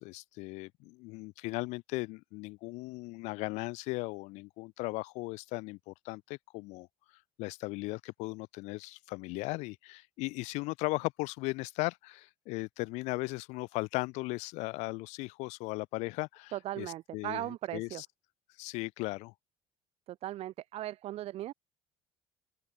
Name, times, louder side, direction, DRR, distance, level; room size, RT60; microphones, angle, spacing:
voice 1, 0.0-6.9 7.4-16.9 17.1-17.5 17.7-18.1 18.6-19.3, left 24 dB, 80° left, 2.5 m, -37 dB
voice 2, 16.5-18.0 20.1-21.5, right 14 dB, 60° right, 1.1 m, -38 dB
open air
supercardioid pair, 90°, 12 cm